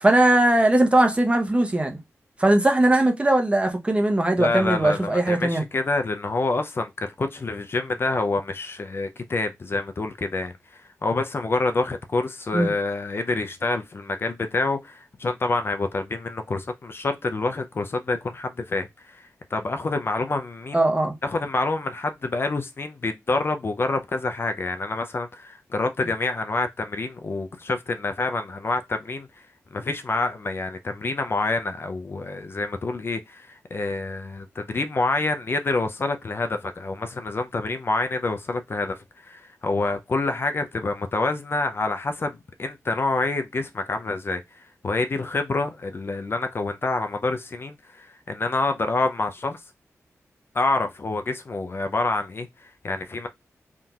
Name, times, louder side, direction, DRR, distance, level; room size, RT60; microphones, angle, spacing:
voice 1, 0.0-2.0 2.4-5.6 12.5-12.7 20.7-21.1, right 1 dB, 20° right, 0.8 m, -19 dB
voice 2, 4.4-10.5 11.0-19.2 19.5-20.8 21.2-29.3 29.7-39.0 39.2-44.4 44.8-49.6 50.5-53.3, left 3 dB, 45° left, 0.4 m, -27 dB
3.6 x 2.7 x 2.3 m
cardioid pair, 75°, 6 cm